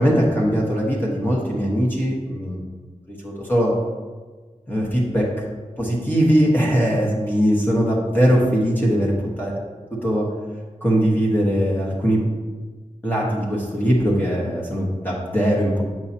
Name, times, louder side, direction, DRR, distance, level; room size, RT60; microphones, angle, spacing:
voice 1, 0.0-2.7 3.1-3.7 4.7-5.3 5.8-9.5 10.0-10.3 10.8-12.2 13.0-15.8, equal, 15° left, -4 dB, 1.3 m, -20 dB
7.9 x 5.7 x 2.9 m, 1.3 s
wide cardioid pair, 90°, 13 cm